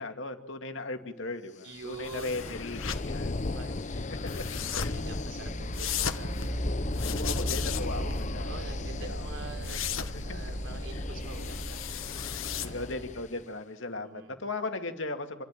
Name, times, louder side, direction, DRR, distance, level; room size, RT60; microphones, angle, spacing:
voice 1, 0.0-3.5 4.1-4.4 4.8-5.0 7.0-9.3 10.1-10.2 10.9-11.0 12.6-15.4, left 2 dB, 65° left, 6 dB, 2.2 m, -37 dB
voice 2, 1.6-2.7 3.4-4.1 4.9-6.8 7.9-9.8 10.2-11.8 12.5-13.1 14.0-14.4, right 3 dB, 70° right, 5 dB, 3.4 m, -46 dB
sound 1, 1.7-13.5, left 2 dB, 35° left, 0.7 m, -37 dB
sound 2, 2.0-13.1, left 8 dB, 85° left, 1.3 m, -38 dB
sound 3, 4.1-12.9, equal, 55° right, 1.6 m, -37 dB
27.5 x 12.0 x 9.0 m, 0.90 s
head